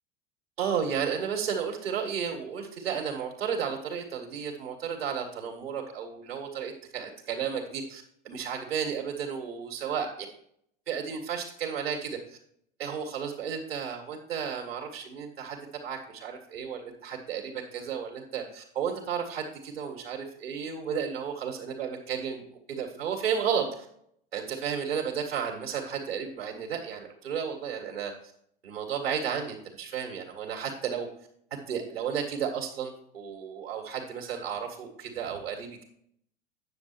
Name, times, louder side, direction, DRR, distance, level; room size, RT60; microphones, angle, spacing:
voice 1, 0.6-10.1 10.9-12.4 12.8-22.4 22.7-23.9 24.3-28.1 28.6-31.1 31.7-35.8, right 7 dB, 85° right, -1 dB, 1.9 m, -33 dB
9.5 x 7.0 x 4.5 m, 0.70 s
hypercardioid pair, 85°, 29 cm